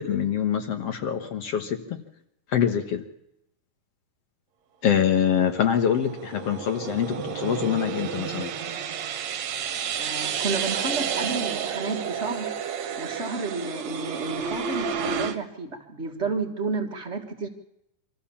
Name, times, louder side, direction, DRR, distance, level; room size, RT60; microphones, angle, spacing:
voice 1, 0.1-1.8 2.5-3.0 4.8-8.5, left 8 dB, 60° left, 6 dB, 2.0 m, -24 dB
sound 1, 5.2-15.4, right 7 dB, 65° right, 2.3 m, -31 dB
voice 2, 10.0-17.5, right 3 dB, 30° right, 2 dB, 1.6 m, -31 dB
25.0 x 14.5 x 7.1 m, 0.83 s
omnidirectional pair, 3.6 m